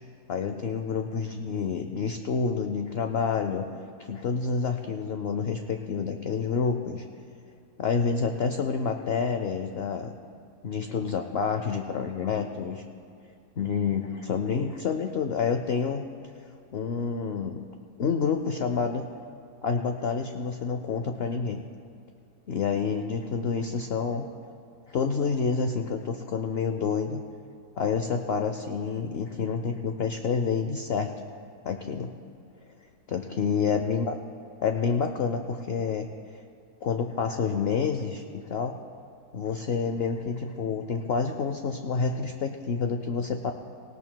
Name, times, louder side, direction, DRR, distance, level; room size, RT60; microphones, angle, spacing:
voice 1, 0.3-3.6 4.0-7.0 7.8-10.1 10.6-12.8 13.6-16.0 16.7-17.6 18.0-19.1 19.6-21.6 22.5-24.3 24.9-27.2 27.8-31.1 31.6-32.1 33.1-34.1 34.6-36.4 36.8-38.8 39.3-43.5, left 5 dB, 70° left, 6 dB, 0.6 m, -28 dB
18.5 x 18.5 x 2.2 m, 2.4 s
omnidirectional pair, 1.7 m